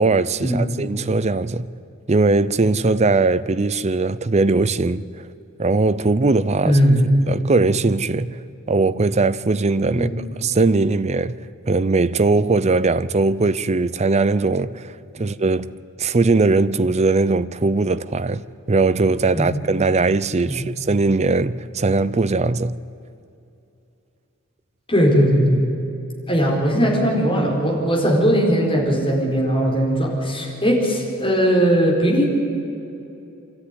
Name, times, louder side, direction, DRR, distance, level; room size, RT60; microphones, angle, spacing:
voice 1, 0.0-1.7 2.1-5.1 5.6-6.8 7.3-8.4 8.7-10.1 10.4-11.4 11.7-15.7 16.0-18.4 18.7-22.8, right 3 dB, 30° right, 0.5 m, -19 dB
voice 2, 6.6-7.1 9.9-10.2 19.3-19.5 20.5-20.6 24.9-25.6 26.3-32.3, equal, 25° left, 4.6 m, -18 dB
25.0 x 13.5 x 9.9 m
head